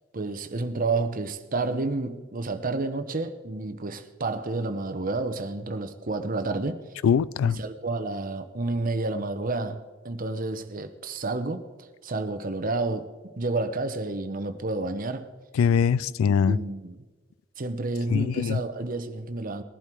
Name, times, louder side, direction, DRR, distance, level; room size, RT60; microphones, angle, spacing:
voice 1, 0.1-6.8 7.4-11.6 12.0-15.3 16.5-16.9 17.6-19.6, right 3 dB, 45° right, 0.9 m, -30 dB
voice 2, 7.0-7.6 15.6-16.6 18.1-18.6, left 7 dB, 85° left, 0.3 m, -22 dB
19.0 x 11.5 x 4.6 m
head